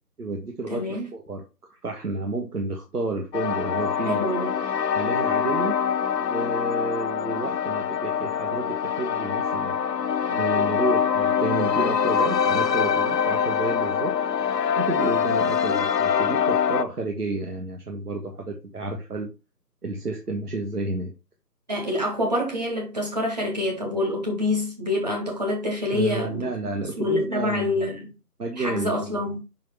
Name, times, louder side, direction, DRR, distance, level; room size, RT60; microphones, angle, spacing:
voice 1, 0.2-4.3 4.9-5.8 6.1-9.8 10.3-14.1 14.7-19.3 19.8-21.1 25.9-27.9 28.4-29.1, right 3 dB, 65° right, 1.6 m, -31 dB
voice 2, 0.7-1.1 4.0-4.5 21.7-26.5 26.8-28.1 28.6-29.4, left 1 dB, 25° right, 1.8 m, -26 dB
sound 1, 3.3-16.8, left 7 dB, 75° left, 0.7 m, -24 dB
5.6 x 4.8 x 4.6 m
figure-of-eight pair, 170°, 49 cm